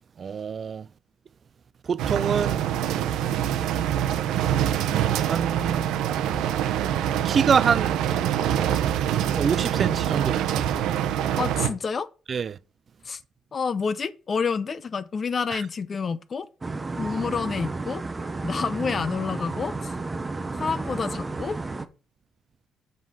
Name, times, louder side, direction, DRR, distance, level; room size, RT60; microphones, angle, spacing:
voice 1, 0.2-0.9 1.9-2.6 5.3-5.9 7.2-8.0 9.3-10.9 12.3-12.6 15.5-15.6, right 6 dB, 35° right, 0.4 m, -25 dB
sound 1, 2.0-11.7, right 10 dB, 90° right, 0.9 m, -25 dB
voice 2, 11.4-12.1 13.0-13.2 13.5-16.5 17.0-18.0 18.4-19.9 20.5-21.6, left 5 dB, 35° left, 0.6 m, -28 dB
sound 2, 16.6-21.9, right 3 dB, 15° right, 0.7 m, -32 dB
7.5 x 5.4 x 6.3 m
cardioid pair, 135°, 0 cm